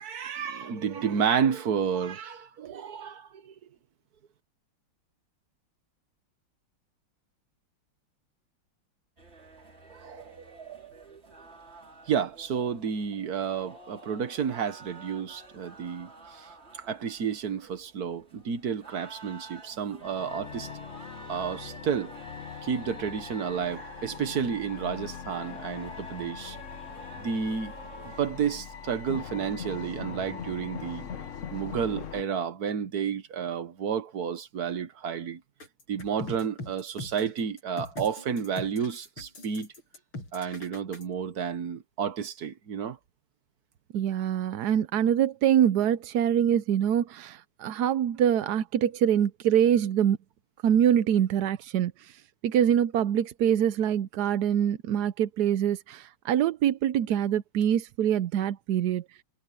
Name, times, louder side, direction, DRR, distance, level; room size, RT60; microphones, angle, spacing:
voice 1, 0.0-3.5 9.9-11.2 12.1-16.5 16.8-20.7 21.3-22.1 22.6-26.6 27.2-27.7 28.2-31.0 31.5-35.4 35.9-39.7 40.3-43.0, right 7 dB, 50° right, 1.6 m, -31 dB
sound 1, 9.2-28.3, right 2 dB, 30° right, 2.8 m, -50 dB
sound 2, 20.0-32.2, left 7 dB, 45° left, 1.2 m, -41 dB
sound 3, 35.6-41.0, left 2 dB, 80° left, 9.1 m, -41 dB
voice 2, 43.9-50.2 50.6-59.0, right 9 dB, 65° right, 1.0 m, -25 dB
omnidirectional pair, 2.2 m